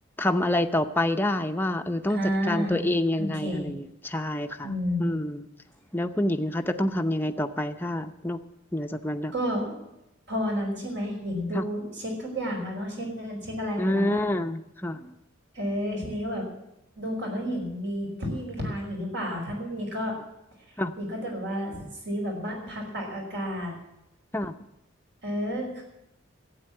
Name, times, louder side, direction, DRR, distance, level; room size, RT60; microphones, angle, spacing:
voice 1, 0.2-2.2 2.5-4.7 5.0-5.5 5.9-8.4 8.7-9.3 11.5-11.6 13.8-15.1 20.8-20.9 24.3-24.5, left 1 dB, 10° left, 5 dB, 0.7 m, -27 dB
voice 2, 2.1-2.9 3.2-3.7 4.6-5.0 9.3-9.7 10.3-14.3 15.5-16.5 16.9-20.2 21.0-23.7 25.2-25.8, equal, 60° right, 0 dB, 5.1 m, -31 dB
12.5 x 8.5 x 9.7 m, 0.87 s
head